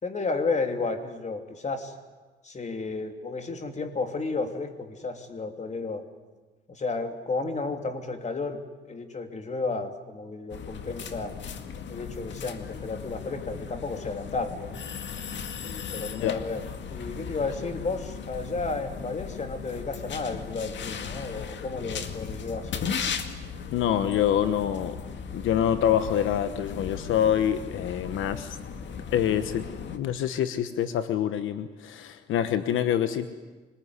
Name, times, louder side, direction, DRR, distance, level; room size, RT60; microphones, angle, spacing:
voice 1, 0.0-1.9 2.4-6.0 6.7-8.6 8.9-11.3 11.9-14.8 15.7-16.6 16.9-22.9, left 3 dB, 35° left, 6 dB, 3.1 m, -32 dB
sound 1, 10.5-30.0, left 6 dB, 65° left, 2.0 m, -37 dB
voice 2, 23.7-25.0 25.3-28.6 29.1-29.6 29.9-33.3, left 10 dB, 85° left, 11 dB, 1.2 m, -26 dB
25.5 x 20.5 x 9.8 m, 1.3 s
cardioid pair, 90°, 20 cm